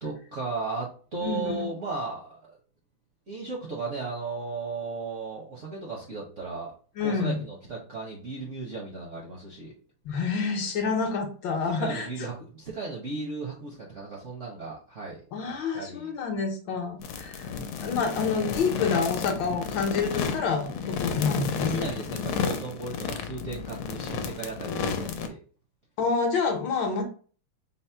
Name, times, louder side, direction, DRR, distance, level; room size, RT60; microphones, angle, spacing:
voice 1, 0.0-2.6 3.3-6.7 7.0-9.7 11.6-16.1 21.6-25.4, right 3 dB, 55° right, -3 dB, 0.8 m, -35 dB
voice 2, 1.2-1.6 7.0-7.4 10.0-12.1 15.3-17.5 17.8-21.7 26.0-27.0, left 5 dB, 70° left, 3 dB, 1.3 m, -28 dB
sound 1, 17.0-25.3, left 6 dB, 85° left, 1.5 m, -32 dB
4.1 x 2.0 x 4.3 m, 0.41 s
omnidirectional pair, 2.3 m